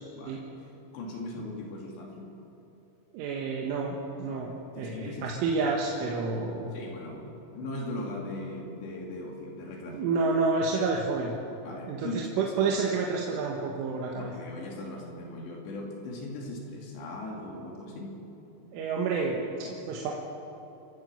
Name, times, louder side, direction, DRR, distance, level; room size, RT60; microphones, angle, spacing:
voice 1, 0.1-2.3 4.3-5.3 5.6-5.8 6.7-10.2 11.6-12.7 14.2-18.2 18.6-18.7, left 2 dB, 60° left, 0 dB, 4.6 m, -39 dB
voice 2, 3.1-6.7 9.9-11.4 11.9-14.3 18.7-20.1, right 4 dB, 75° right, -1 dB, 4.0 m, -29 dB
27.5 x 15.0 x 6.9 m, 3.0 s
omnidirectional pair, 5.8 m